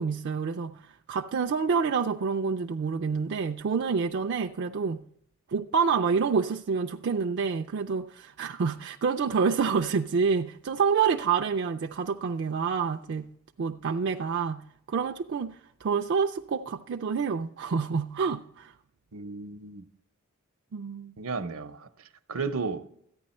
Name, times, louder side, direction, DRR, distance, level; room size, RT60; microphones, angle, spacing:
voice 1, 0.0-5.0 5.5-13.3 13.6-18.7 20.7-21.1, right 5 dB, 55° right, 0.4 m, -28 dB
voice 2, 19.1-19.8 21.2-21.9 22.3-22.8, right 4 dB, 70° right, 0.8 m, -33 dB
14.0 x 9.4 x 4.3 m
head